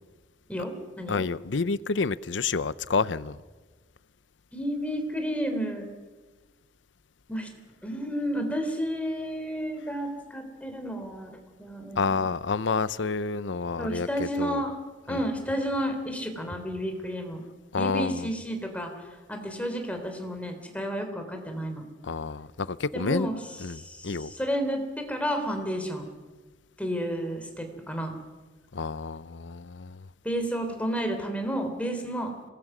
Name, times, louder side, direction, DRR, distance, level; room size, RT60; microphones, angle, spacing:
voice 1, 0.5-1.2 4.5-5.9 7.3-7.5 7.8-12.2 13.8-14.7 15.1-17.4 17.8-18.9 19.3-21.8 22.9-23.4 23.7-26.1 26.8-28.2 30.2-32.3, equal, 10° left, 4 dB, 3.4 m, -31 dB
voice 2, 1.1-3.4 12.0-14.6 15.1-15.2 17.7-18.3 22.0-23.3 23.6-24.3 28.7-30.1, left 4 dB, 85° left, 17 dB, 0.7 m, -29 dB
26.5 x 19.5 x 6.2 m, 1.3 s
head